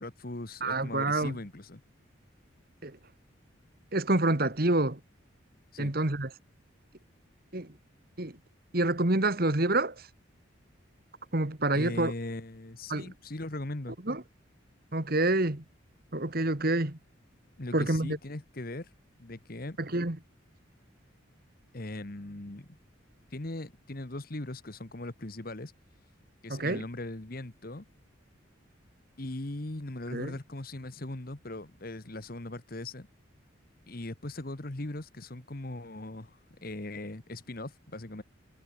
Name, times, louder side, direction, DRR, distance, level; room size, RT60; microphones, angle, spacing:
voice 1, 0.0-1.8 5.7-5.9 11.7-14.0 17.6-18.9 19.2-19.8 21.7-22.7 23.3-25.7 26.0-26.1 26.4-27.8 29.2-33.1 33.9-38.2, left 2 dB, 45° left, 1.3 m, -39 dB
voice 2, 0.6-1.4 2.8-3.0 3.9-5.0 5.8-6.3 7.5-7.7 8.2-8.4 8.7-10.1 11.3-12.1 12.9-13.0 14.1-14.2 14.9-15.6 16.1-17.0 17.7-18.2 19.8-20.2 26.5-26.8 30.1-30.4, right 2 dB, 45° right, 1.9 m, -27 dB
head